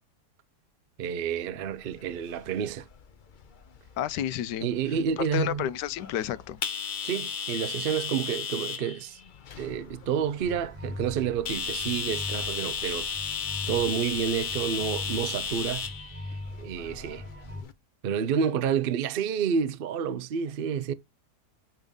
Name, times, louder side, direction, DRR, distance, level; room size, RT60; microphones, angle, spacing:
voice 1, 1.0-2.9 4.6-5.7 7.0-9.2 9.6-13.1 13.7-15.9 16.6-17.3 18.0-20.9, right 7 dB, 75° right, 0.5 m, -29 dB
sound 1, 1.6-17.7, left 6 dB, 50° left, 0.5 m, -36 dB
voice 2, 4.0-4.7 5.2-6.6, left 11 dB, 85° left, 1.2 m, -30 dB
sound 2, 10.4-17.6, left 1 dB, 15° right, 0.3 m, -40 dB
8.0 x 3.6 x 5.2 m
omnidirectional pair, 1.8 m